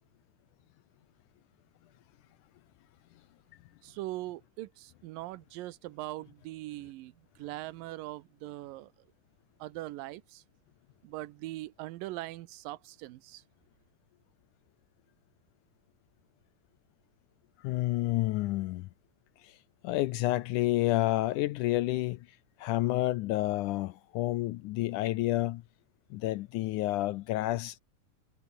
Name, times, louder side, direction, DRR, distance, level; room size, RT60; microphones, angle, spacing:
voice 1, 3.8-7.1 7.4-8.9 9.6-10.4 11.0-13.4, right 17 dB, 80° right, 2.5 m, -41 dB
voice 2, 17.6-18.9 19.4-19.6 19.8-22.3 22.6-25.6 26.1-27.8, left 17 dB, 80° left, 1.9 m, -29 dB
omnidirectional pair, 4.0 m